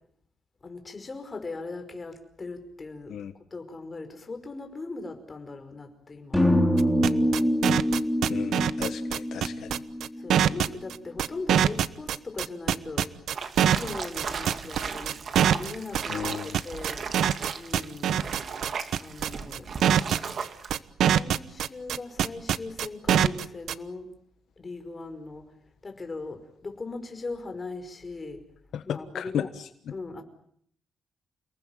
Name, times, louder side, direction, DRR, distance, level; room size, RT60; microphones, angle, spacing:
voice 1, 0.6-3.1 3.5-6.5 7.0-7.5 8.2-8.5 10.2-13.2 13.7-15.2 15.5-17.1 17.6-18.3 19.0-19.7 21.0-24.1 24.6-25.5 25.8-28.4 28.9-29.5 29.9-30.2, left 3 dB, 25° left, 6 dB, 5.3 m, -39 dB
sound 1, 6.3-10.5, equal, 5° left, 3.4 m, -25 dB
sound 2, 6.8-23.7, right 10 dB, 75° right, 1.1 m, -23 dB
voice 2, 8.3-9.8 16.1-16.6 28.7-29.7, left 9 dB, 70° left, 9 dB, 1.3 m, -34 dB
sound 3, 13.3-20.8, right 6 dB, 45° right, 2.8 m, -36 dB
29.5 x 19.5 x 9.3 m, 0.66 s
cardioid pair, 135°, 0 cm